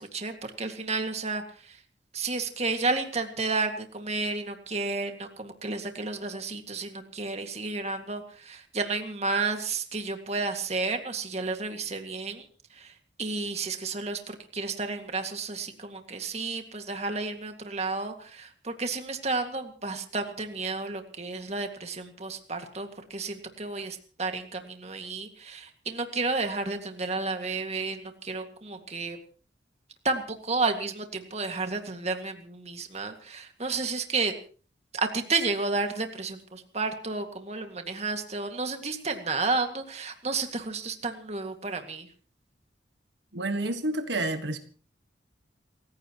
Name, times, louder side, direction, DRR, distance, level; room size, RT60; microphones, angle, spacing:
voice 1, 0.0-1.8 2.1-29.2 30.0-34.3 34.9-42.1, right 3 dB, 40° right, 6 dB, 2.1 m, -32 dB
voice 2, 43.3-44.6, right 2 dB, 80° right, 7 dB, 1.6 m, -29 dB
29.0 x 15.5 x 3.1 m, 0.41 s
head